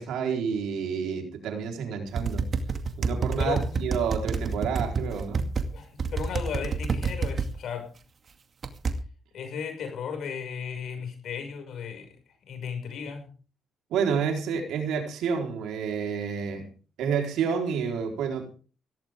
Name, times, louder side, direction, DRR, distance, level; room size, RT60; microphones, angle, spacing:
voice 1, 0.0-2.4 3.0-5.4 13.9-16.7 17.0-18.6, right 6 dB, 85° right, 4.2 m, -29 dB
sound 1, 2.1-5.7 6.0-7.5 8.6-8.9, right 5 dB, 45° right, 2.3 m, -27 dB
voice 2, 3.4-3.9 5.7-7.9 9.3-12.2 12.4-13.3, left 7 dB, 70° left, 6.3 m, -35 dB
17.5 x 16.5 x 3.7 m
cardioid pair, 90°, 0 cm